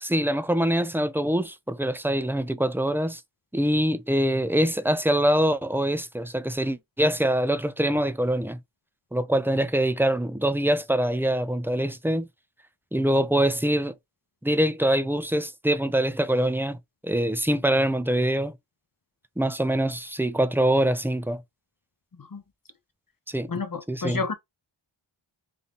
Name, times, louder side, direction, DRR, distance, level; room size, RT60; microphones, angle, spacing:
voice 1, 0.0-3.2 3.5-8.6 9.1-12.3 12.9-13.9 14.4-16.8 17.0-18.6 19.4-21.4 23.3-23.5 23.9-24.2, right 1 dB, 5° right, 0.4 m, -24 dB
voice 2, 23.5-24.3, left 4 dB, 45° left, 0.9 m, -30 dB
3.6 x 2.7 x 3.7 m
wide cardioid pair, 50°, 48 cm